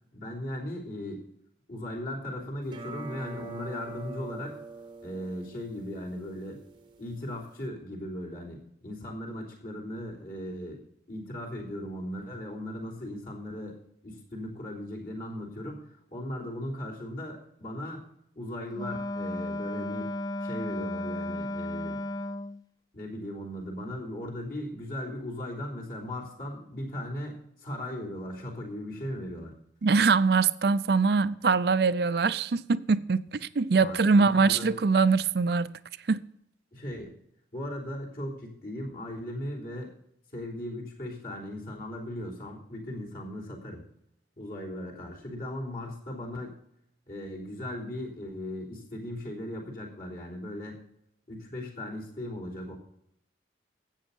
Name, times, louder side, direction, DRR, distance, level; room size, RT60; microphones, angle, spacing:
voice 1, 0.1-1.3 1.7-4.6 5.0-6.6 7.0-10.8 11.1-13.8 14.0-18.0 18.4-20.1 20.4-22.0 22.9-29.5 33.7-34.8 36.7-37.1 37.5-39.9 40.3-43.8 44.4-46.6 47.1-50.8 51.3-52.8, left 1 dB, 50° left, 3.5 m, -38 dB
sound 1, 2.6-7.7, right 3 dB, 25° right, 0.9 m, -44 dB
Wind instrument woodwind instrument, 18.7-22.6, left 1 dB, 20° left, 0.4 m, -34 dB
voice 2, 29.8-35.8 36.1-36.2, right 4 dB, 60° right, 0.5 m, -23 dB
13.0 x 8.4 x 5.4 m
head